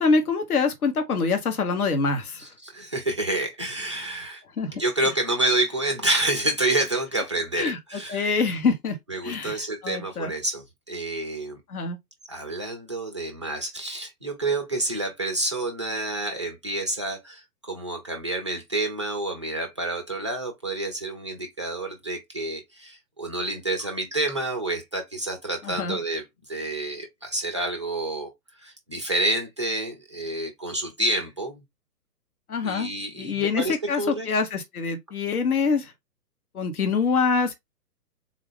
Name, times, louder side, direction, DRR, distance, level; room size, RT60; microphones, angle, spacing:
voice 1, 0.0-2.5 4.6-4.7 5.0-5.1 7.6-7.8 8.1-9.0 9.2-10.3 11.7-12.0 25.6-26.0 32.5-32.9 33.2-35.9 36.5-37.5, left 4 dB, 65° left, 1.1 m, -25 dB
voice 2, 2.4-4.4 4.8-8.4 9.1-11.6 12.2-31.6 32.6-34.3, right 2 dB, 20° right, 0.4 m, -28 dB
3.7 x 2.5 x 3.5 m
figure-of-eight pair, 125°, 47 cm